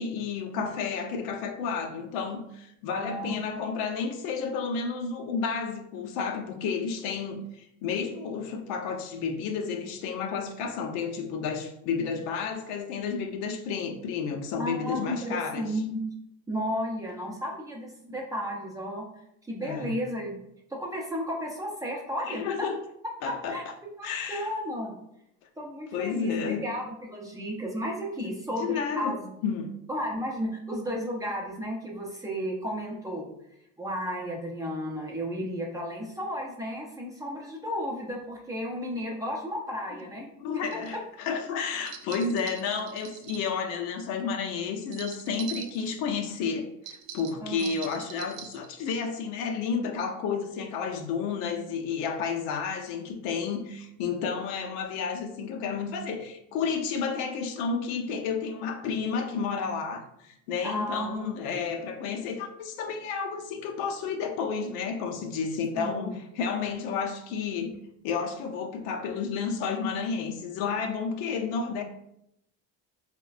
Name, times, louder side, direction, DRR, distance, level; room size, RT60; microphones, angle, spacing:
voice 1, 0.0-15.7 19.6-19.9 22.2-22.8 23.2-23.6 24.0-24.5 25.9-26.7 28.2-28.3 28.6-29.7 40.4-67.8 68.0-71.8, left 5 dB, 75° left, 0.6 m, -31 dB
voice 2, 2.9-3.4 14.6-16.0 16.5-19.1 19.5-20.4 20.7-22.7 23.2-23.7 24.0-24.9 25.6-29.3 29.9-33.3 33.8-40.3 47.4-47.8 60.6-61.2 61.5-61.6 65.7-66.2, equal, 10° right, 0.5 m, -33 dB
sound 1, 40.6-41.0 41.8-43.5 44.8-45.9 46.8-48.7, right 9 dB, 75° right, 0.5 m, -42 dB
4.5 x 2.1 x 2.4 m
supercardioid pair, 125°, 36 cm